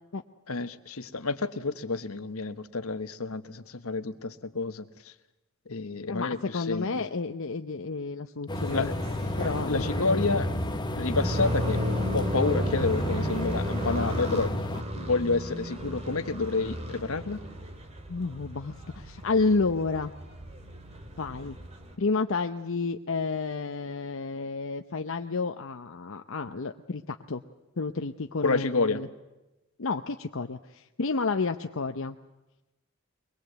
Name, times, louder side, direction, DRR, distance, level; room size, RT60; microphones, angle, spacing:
voice 1, 0.5-4.8 5.7-7.0 8.7-8.9 9.4-10.5 11.0-11.8 12.1-14.6 14.9-17.4 28.4-29.0, left 3 dB, 80° left, 10 dB, 1.2 m, -29 dB
voice 2, 6.1-8.9 9.4-10.2 18.1-20.1 21.2-21.6 22.0-27.4 27.8-29.1 29.8-32.2, left 4 dB, 65° left, 5 dB, 0.8 m, -30 dB
sound 1, 8.5-14.8, left 1 dB, 20° left, 1.0 m, -33 dB
sound 2, 8.5-22.0, equal, 30° right, 2.2 m, -33 dB
23.5 x 21.5 x 8.1 m, 1.0 s
head